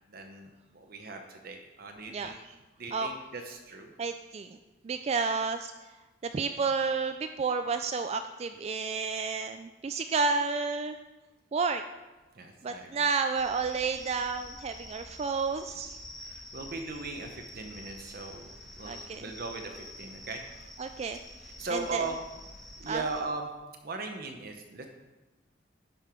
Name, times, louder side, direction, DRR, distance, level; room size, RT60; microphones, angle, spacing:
voice 1, 0.1-2.3 2.8-3.9 12.4-13.0 16.2-20.4 21.6-22.2 22.8-23.5 23.8-24.9, right 3 dB, 55° right, 4 dB, 0.8 m, -38 dB
voice 2, 4.0-4.6 4.8-5.7 6.2-11.0 11.5-11.8 12.6-16.0 18.8-19.2 20.8-21.2 21.7-22.1 22.9-23.0, right 4 dB, 35° right, 8 dB, 0.3 m, -31 dB
sound 1, 13.4-23.2, left 1 dB, ahead, 1.5 m, -48 dB
11.0 x 5.4 x 4.5 m, 1.1 s
head